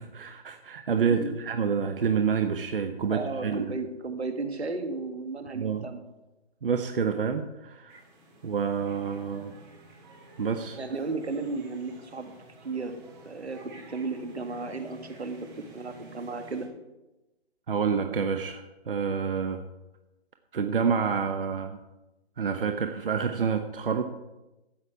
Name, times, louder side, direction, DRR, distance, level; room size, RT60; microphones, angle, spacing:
voice 1, 0.0-3.7 5.5-5.9 6.6-8.0 8.4-9.5 10.4-10.8 17.7-19.6 20.5-21.8 22.4-24.0, right 6 dB, 55° right, 6 dB, 0.9 m, -28 dB
voice 2, 1.1-1.4 3.1-6.0 10.8-12.3 12.6-15.4 15.7-16.7, right 3 dB, 80° right, 6 dB, 1.9 m, -34 dB
sound 1, 7.9-16.7, right 2 dB, 20° right, 2.0 m, -52 dB
13.0 x 8.5 x 4.7 m, 1.0 s
hypercardioid pair, 155°, 32 cm